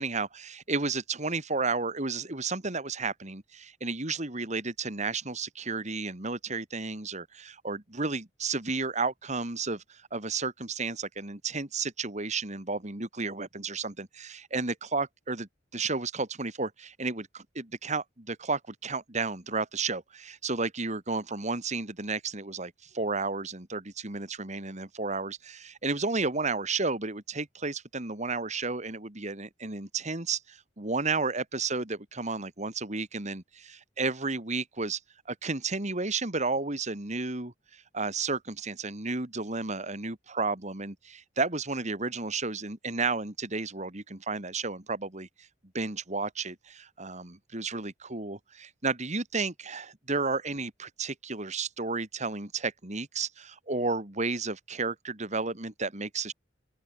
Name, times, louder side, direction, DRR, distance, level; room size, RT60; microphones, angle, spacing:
voice 1, 0.0-35.0 35.3-45.3 45.7-56.3, right 3 dB, 40° right, 2.7 m, -32 dB
open air
head